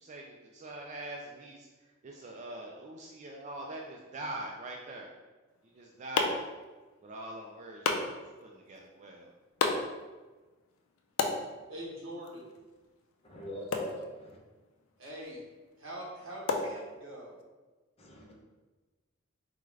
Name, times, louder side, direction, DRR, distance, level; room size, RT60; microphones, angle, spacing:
voice 1, 0.0-1.7 2.0-5.1 5.6-6.4 7.0-9.3, right 1 dB, 35° right, -1 dB, 0.3 m, -43 dB
sound 1, 5.5-17.4, left 4 dB, 75° left, 0.4 m, -37 dB
voice 2, 11.7-12.5 15.0-15.4 15.8-17.4, equal, 70° right, -4 dB, 1.0 m, -43 dB
voice 3, 13.2-14.4 18.0-18.3, left 1 dB, 30° left, -3 dB, 0.7 m, -43 dB
3.7 x 2.3 x 3.1 m, 1.2 s
head